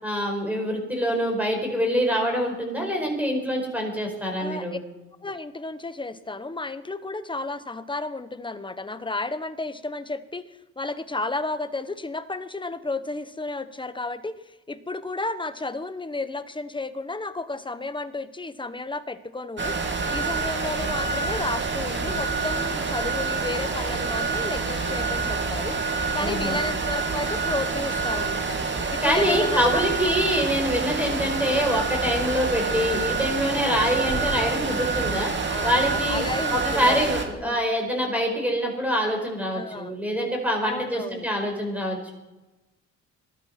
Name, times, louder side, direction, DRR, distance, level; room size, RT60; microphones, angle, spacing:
voice 1, 0.0-4.8 26.2-26.6 29.0-35.3 35.6-36.2 36.5-42.1, equal, 5° right, 2 dB, 4.9 m, -25 dB
voice 2, 4.4-4.8 5.2-10.5 10.8-14.3 14.7-19.8 20.1-28.6 28.9-30.2 33.5-33.8 35.5-37.6 39.5-39.9 40.6-41.3, left 3 dB, 15° left, 11 dB, 1.1 m, -32 dB
sound 1, 19.6-37.2, right 4 dB, 35° right, 2.6 m, -27 dB
19.0 x 12.5 x 5.9 m, 1.1 s
cardioid pair, 100°, 31 cm